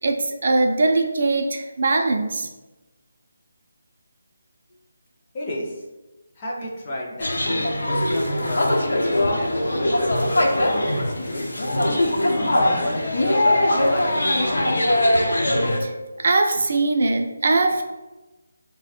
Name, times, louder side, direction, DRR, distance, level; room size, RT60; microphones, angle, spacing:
voice 1, 0.0-2.5 15.8-17.8, right 3 dB, 40° right, 3 dB, 0.3 m, -21 dB
voice 2, 5.3-5.8 6.4-11.5 12.3-14.9, left 1 dB, 20° left, -3 dB, 0.4 m, -33 dB
sound 1, 7.2-15.8, left 1 dB, 90° left, 0.7 m, -21 dB
3.3 x 2.0 x 4.1 m, 1.1 s
hypercardioid pair, 175°, 0 cm